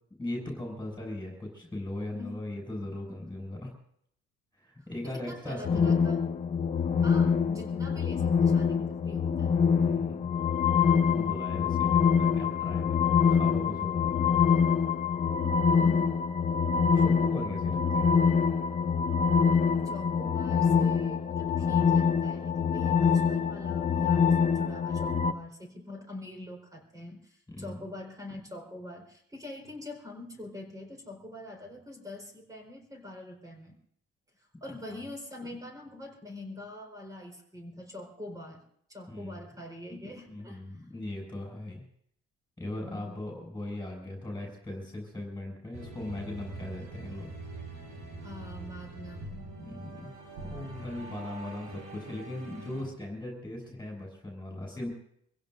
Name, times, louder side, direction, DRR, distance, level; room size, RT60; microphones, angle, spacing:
voice 1, 0.2-3.7 4.5-5.9 9.8-10.3 10.8-14.4 15.7-15.8 16.9-18.3 27.5-27.8 39.1-39.4 40.3-41.8 42.6-47.3 49.6-50.1 50.4-54.9, left 1 dB, 5° left, -1 dB, 6.0 m, -39 dB
voice 2, 5.0-6.3 7.0-9.7 15.8-16.4 19.7-33.8 34.4-38.6 38.9-40.9 42.8-43.3 48.2-49.5, left 1 dB, 10° right, 2 dB, 4.3 m, -44 dB
sound 1, 5.6-25.3, left 6 dB, 25° left, 0.8 m, -25 dB
sound 2, 45.7-52.8, right 2 dB, 65° right, 6.9 m, -44 dB
26.5 x 16.0 x 2.6 m, 0.68 s
cardioid pair, 145°, 30 cm